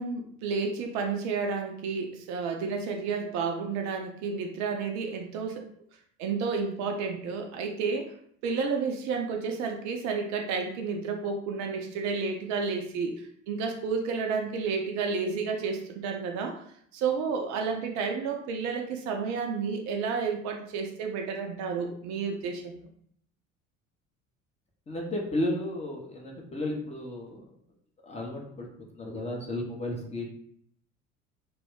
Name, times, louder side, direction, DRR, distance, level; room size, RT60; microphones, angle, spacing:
voice 1, 0.0-5.6 6.2-8.1 8.4-16.6 16.9-22.9, right 5 dB, 45° right, 3 dB, 0.4 m, -31 dB
voice 2, 24.9-27.4 28.0-28.7 28.9-30.3, left 1 dB, 15° left, -1 dB, 0.6 m, -33 dB
2.2 x 2.0 x 3.5 m, 0.66 s
figure-of-eight pair, 60°, 39 cm